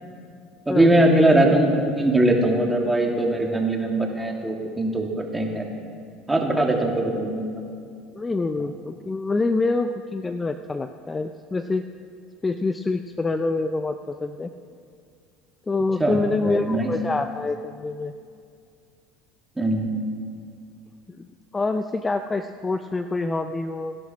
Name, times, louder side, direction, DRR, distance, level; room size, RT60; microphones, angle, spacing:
voice 1, 0.7-5.6 6.3-7.5 16.0-16.9 19.6-19.9, right 1 dB, 10° right, 1 dB, 2.7 m, -21 dB
voice 2, 8.1-11.8 12.4-14.5 15.7-18.1 21.2-21.3 21.5-24.0, left 3 dB, 20° left, 9 dB, 0.6 m, -26 dB
18.5 x 11.5 x 6.2 m, 2.3 s
supercardioid pair, 90°, 0 cm